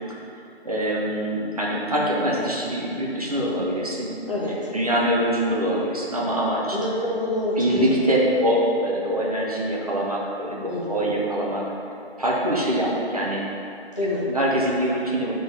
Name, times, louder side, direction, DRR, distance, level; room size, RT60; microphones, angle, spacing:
voice 1, 0.6-4.2 4.5-6.8 7.6-10.6 10.9-11.6 12.2-13.4 14.3-15.3, right 1 dB, 35° right, -4 dB, 0.8 m, -24 dB
voice 2, 4.3-4.7 6.7-8.0 10.7-11.1 14.0-14.3, left 1 dB, 30° left, -6 dB, 1.0 m, -27 dB
7.7 x 3.8 x 5.3 m, 2.6 s
hypercardioid pair, 180°, 32 cm